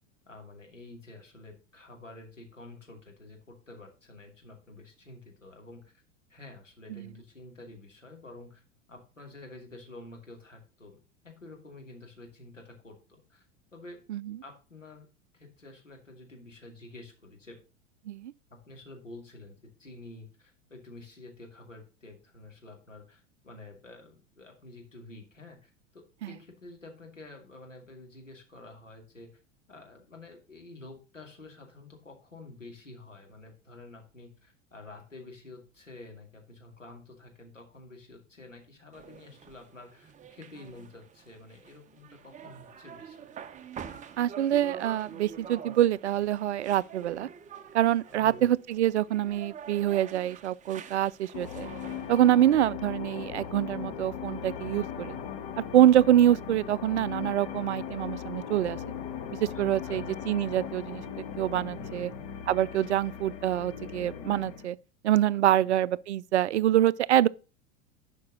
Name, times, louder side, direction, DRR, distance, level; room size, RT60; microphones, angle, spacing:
voice 1, 0.3-6.0 6.3-8.6 8.9-11.0 11.2-13.5 13.7-14.0 14.4-15.1 15.3-17.6 18.5-29.4 29.7-43.3 48.1-48.5 59.5-60.1 61.7-62.3 65.3-65.8, left 2 dB, 85° left, 2.5 m, -49 dB
sound 1, 38.9-52.2, right 7 dB, 20° right, 0.9 m, -46 dB
voice 2, 44.2-47.3 47.7-51.7 52.1-55.2 55.7-58.8 59.4-61.0 61.4-62.1 62.5-64.8 65.0-67.3, right 12 dB, 65° right, 0.5 m, -25 dB
sound 2, 51.3-64.7, left 8 dB, 45° left, 1.6 m, -38 dB
11.5 x 5.4 x 3.8 m
figure-of-eight pair, 85°, 37 cm